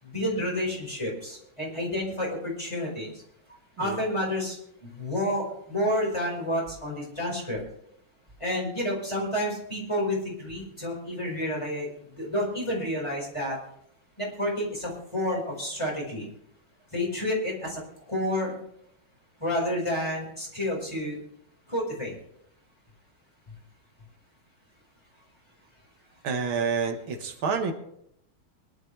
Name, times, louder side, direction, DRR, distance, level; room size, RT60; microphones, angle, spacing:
voice 1, 0.0-3.2 3.8-7.6 8.4-13.6 14.2-16.3 16.9-18.6 19.4-21.2 21.7-22.1, left 1 dB, 15° left, -2 dB, 4.8 m, -30 dB
voice 2, 26.2-27.7, right 5 dB, 85° right, 5 dB, 2.2 m, -28 dB
22.5 x 11.5 x 3.3 m, 0.72 s
omnidirectional pair, 2.2 m